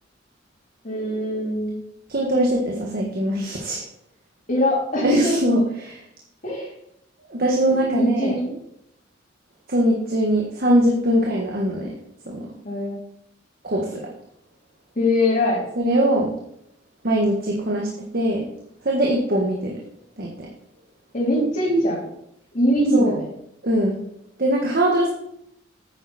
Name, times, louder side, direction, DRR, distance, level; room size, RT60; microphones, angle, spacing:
voice 1, 0.8-1.8 4.5-5.3 6.4-6.7 7.9-8.5 12.6-13.0 14.9-15.6 21.1-22.0 22.5-23.2, left 1 dB, 40° left, -9 dB, 3.4 m, -22 dB
voice 2, 2.1-3.8 5.0-6.0 7.3-8.4 9.7-11.9 12.2-12.5 13.6-14.1 15.8-16.3 17.0-17.9 18.1-18.5 18.8-19.8 20.2-20.5 22.9-23.2 23.6-24.0 24.4-25.1, right 1 dB, 55° right, -1 dB, 1.5 m, -21 dB
9.2 x 9.2 x 4.3 m, 0.75 s
head